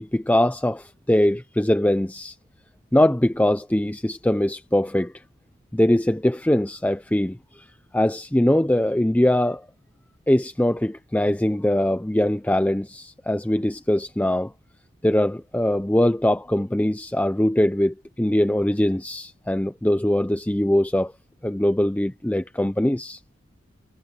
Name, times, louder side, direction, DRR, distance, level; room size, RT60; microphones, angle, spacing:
voice 1, 0.0-2.4 2.9-5.1 5.7-7.7 7.9-9.7 10.3-14.5 15.0-21.1 21.4-23.2, left 1 dB, 5° left, 0.4 m, -22 dB
head